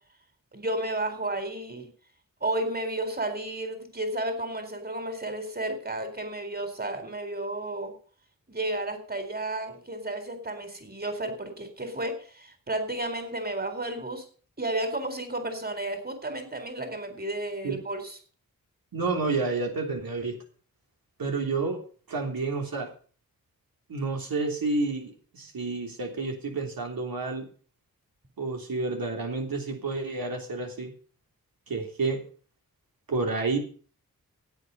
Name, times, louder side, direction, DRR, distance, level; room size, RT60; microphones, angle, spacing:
voice 1, 0.5-1.9 2.4-7.9 8.5-14.2 14.6-18.2, right 1 dB, 25° right, 8 dB, 4.2 m, -32 dB
voice 2, 18.9-20.4 21.2-21.8 22.1-22.9 23.9-27.4 28.4-30.9 31.7-32.2 33.1-33.6, right 3 dB, 75° right, 2 dB, 3.3 m, -30 dB
16.5 x 8.7 x 5.5 m, 0.42 s
cardioid pair, 60°, 35 cm